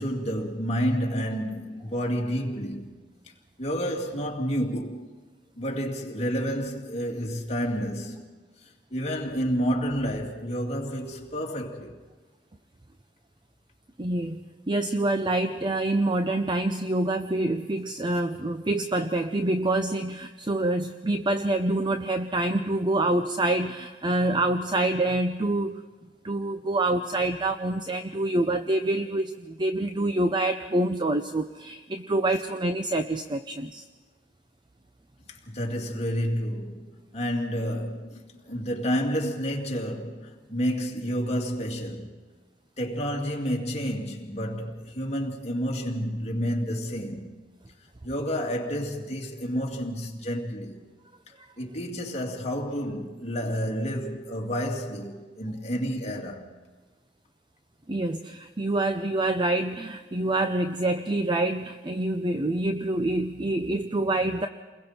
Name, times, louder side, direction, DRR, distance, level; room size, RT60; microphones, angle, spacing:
voice 1, 0.0-2.9 3.6-5.1 5.6-8.2 8.6-12.0 35.3-42.1 42.8-47.4 48.0-50.8 51.6-56.5, equal, 35° left, 2.6 m, -30 dB
voice 2, 14.0-14.4 14.7-25.7 26.2-33.8 51.4-51.5 57.9-64.5, right 2 dB, 25° right, 0.7 m, -26 dB
30.0 x 21.5 x 4.4 m
head